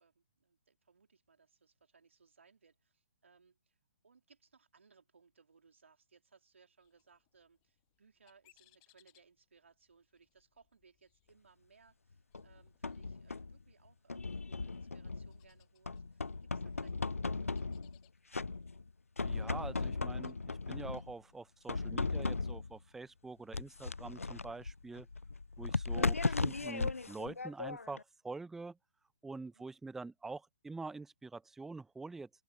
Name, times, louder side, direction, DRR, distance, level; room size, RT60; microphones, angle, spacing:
voice 1, 0.0-3.8 4.0-17.8 29.4-29.6, right 5 dB, 65° right, 3.4 m, -66 dB
sound 1, 6.8-25.3, left 29 dB, 30° left, 6.9 m, -75 dB
sound 2, 12.3-13.6 14.1-15.4 15.9-18.0 18.3-18.9 19.2-21.1 21.7-22.8 23.5-28.0, left 3 dB, 85° left, 0.4 m, -37 dB
voice 2, 19.2-25.1 25.6-28.8 29.2-32.3, right 3 dB, 5° right, 0.7 m, -46 dB
open air
figure-of-eight pair, 130°, 7 cm